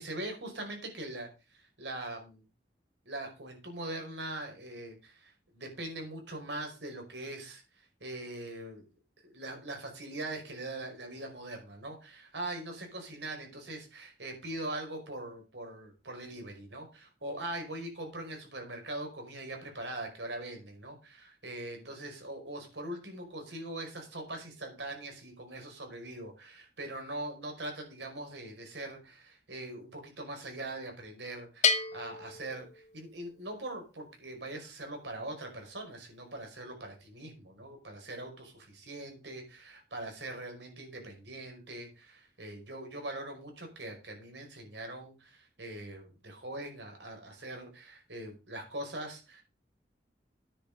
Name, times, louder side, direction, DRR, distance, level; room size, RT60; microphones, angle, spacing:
voice 1, 0.0-2.4 3.1-7.6 8.0-8.8 9.2-49.4, right 1 dB, 90° right, 3 dB, 5.2 m, -42 dB
Bell, 31.6-33.3, left 5 dB, 45° left, 1.0 m, -31 dB
9.9 x 6.4 x 7.7 m, 0.31 s
head